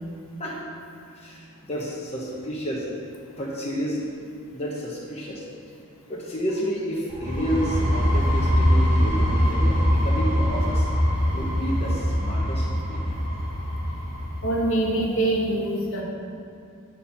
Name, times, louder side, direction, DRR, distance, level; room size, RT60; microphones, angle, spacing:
voice 1, 1.1-2.9 3.4-4.1 4.5-5.4 6.1-10.9 11.3-13.2, equal, 30° left, -5 dB, 0.9 m, -30 dB
sound 1, 7.1-14.7, equal, 35° right, 1.4 m, -23 dB
voice 2, 14.4-16.0, right 1 dB, 65° left, -2 dB, 1.3 m, -24 dB
8.4 x 4.2 x 5.7 m, 2.5 s
head